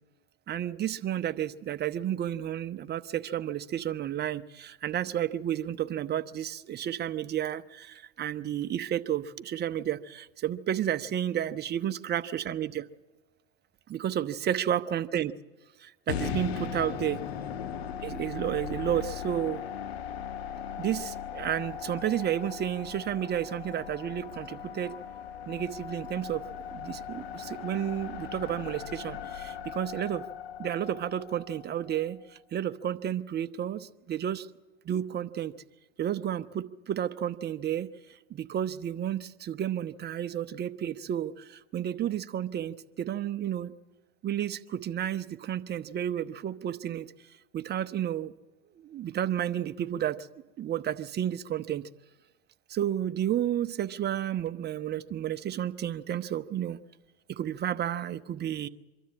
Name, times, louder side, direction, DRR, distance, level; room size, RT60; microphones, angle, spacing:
voice 1, 0.5-12.8 13.9-15.3 15.8-17.2 18.0-19.6 20.8-24.9 25.5-26.4 26.7-30.2 30.6-34.5 34.8-35.5 36.0-37.9 38.3-43.7 44.2-47.1 47.5-48.3 48.8-50.2 50.6-51.8 52.7-56.8 57.3-58.7, right 10 dB, 35° right, 12 dB, 0.9 m, -31 dB
sound 1, 16.1-32.2, left 8 dB, 85° left, 1.4 m, -39 dB
24.0 x 13.0 x 8.6 m, 1.2 s
hypercardioid pair, 95°, 31 cm